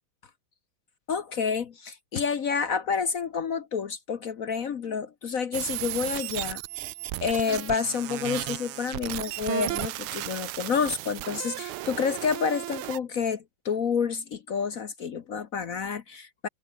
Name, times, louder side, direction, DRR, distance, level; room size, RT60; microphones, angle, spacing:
voice 1, 1.1-6.9 7.2-16.5, left 6 dB, 50° left, 1.1 m, -29 dB
sound 1, 5.5-13.0, right 16 dB, 90° right, 1.6 m, -34 dB
omnidirectional pair, 2.3 m